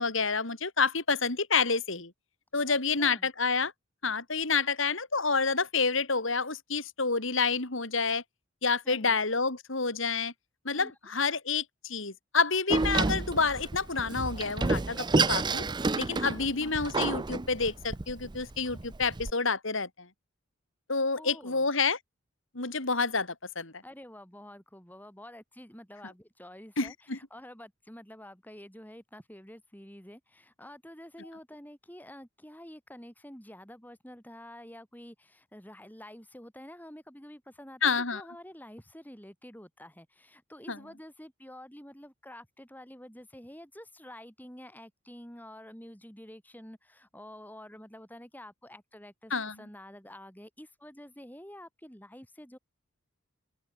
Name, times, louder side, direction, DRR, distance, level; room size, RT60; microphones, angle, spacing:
voice 1, 0.0-2.1 2.5-3.7 4.0-8.2 8.6-10.3 10.6-15.6 16.0-20.1 20.9-22.0 22.5-23.7 26.8-27.2 37.8-38.2 40.7-40.8 49.3-49.5, left 4 dB, 65° left, 3.0 m, -28 dB
voice 2, 2.7-3.3 8.8-9.1 10.7-10.9 16.5-16.8 21.2-21.7 23.8-52.6, left 1 dB, 10° left, 7.3 m, -49 dB
Door, 12.7-19.3, right 3 dB, 20° right, 0.5 m, -30 dB
open air
head